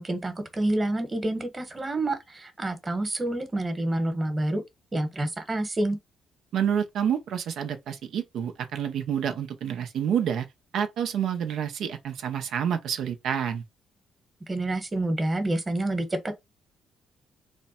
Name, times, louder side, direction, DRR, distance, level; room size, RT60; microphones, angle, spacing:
voice 1, 0.0-4.6 4.9-6.0 14.5-16.3, right 1 dB, 25° right, 1.1 m, -28 dB
voice 2, 6.5-10.5 10.7-13.6, right 8 dB, 75° right, 0.6 m, -28 dB
3.3 x 2.2 x 4.1 m
cardioid pair, 90°, 0 cm